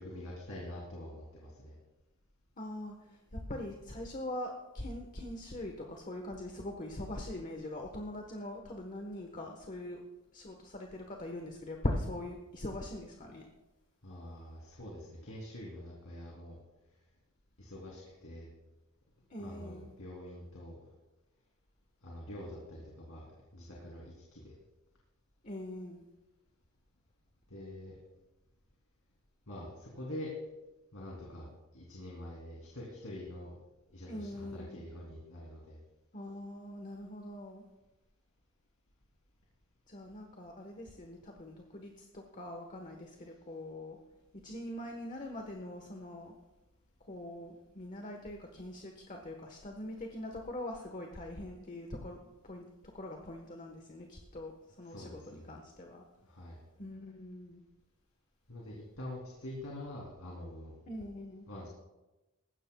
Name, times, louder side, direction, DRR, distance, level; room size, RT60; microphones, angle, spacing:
voice 1, 0.0-1.7 14.0-16.6 17.6-18.5 19.4-20.8 22.0-24.5 27.5-28.0 29.5-30.3 30.9-33.6 33.9-35.8 54.8-55.6 56.2-56.6 58.5-60.8 61.5-61.7, left 1 dB, 70° left, -3 dB, 3.0 m, -45 dB
voice 2, 2.6-10.0 10.3-13.5 19.3-19.9 25.4-26.0 34.1-34.8 36.1-37.6 39.9-44.0 44.4-46.3 47.0-56.0 56.8-57.6 60.9-61.5, left 1 dB, 35° left, 3 dB, 1.2 m, -42 dB
20.0 x 15.5 x 2.3 m, 1.1 s
head